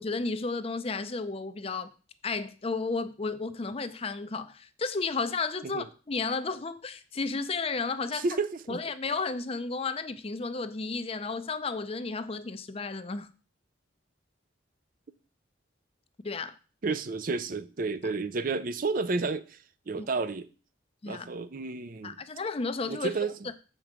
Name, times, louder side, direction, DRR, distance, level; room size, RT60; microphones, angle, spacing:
voice 1, 0.0-1.9 2.2-8.3 8.7-13.3 16.2-16.5 20.0-20.1 21.0-21.3 22.0-23.1, left 4 dB, 30° left, 0.5 m, -33 dB
voice 2, 8.1-8.8 16.8-19.6 19.9-20.5 21.0-22.2 22.9-23.3, right 3 dB, 45° right, 0.5 m, -31 dB
7.6 x 5.2 x 6.0 m
head